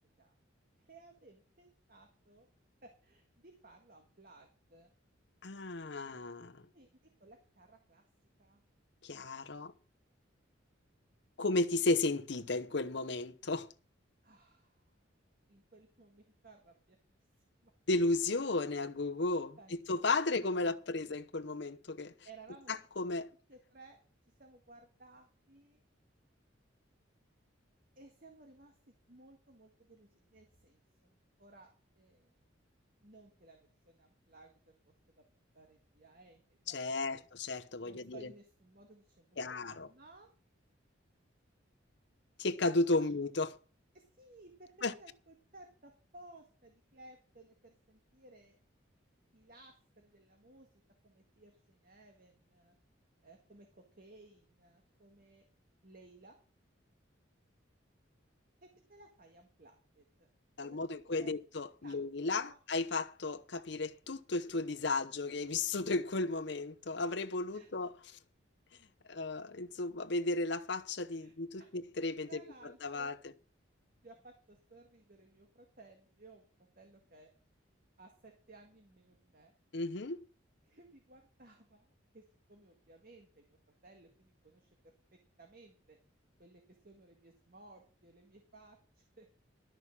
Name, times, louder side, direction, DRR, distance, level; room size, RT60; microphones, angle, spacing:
voice 1, 0.8-2.5 2.8-4.9 6.7-6.9 7.2-8.0 8.4-8.6 14.2-14.8 15.5-17.2 17.6-17.7 19.6-20.1 20.5-20.8 22.2-22.7 23.5-24.0 24.4-25.8 28.0-28.8 29.1-31.7 32.0-32.3 33.0-34.7 35.1-35.2 35.5-36.9 37.1-37.2 37.8-40.3 43.0-43.1 43.9-48.6 49.3-50.7 51.0-52.8 53.2-55.4 55.8-56.4 58.6-60.3 60.6-60.8 61.2-61.3 61.8-62.0 62.4-62.6 67.5-67.7 71.2-71.7 72.3-73.2 74.0-76.4 76.8-77.3 78.0-79.5 80.6-82.2 82.5-83.6 83.8-84.9 85.4-86.0 86.4-89.3, right 2 dB, 50° right, 1.8 m, -59 dB
voice 2, 5.4-6.6 9.0-9.7 11.4-13.7 17.9-19.6 19.9-22.1 22.7-23.3 36.7-38.3 39.4-39.9 42.4-43.5 44.8-44.9 60.6-67.9 69.1-73.2 79.7-80.2, left 2 dB, 60° left, 0.9 m, -34 dB
12.5 x 6.4 x 7.4 m
head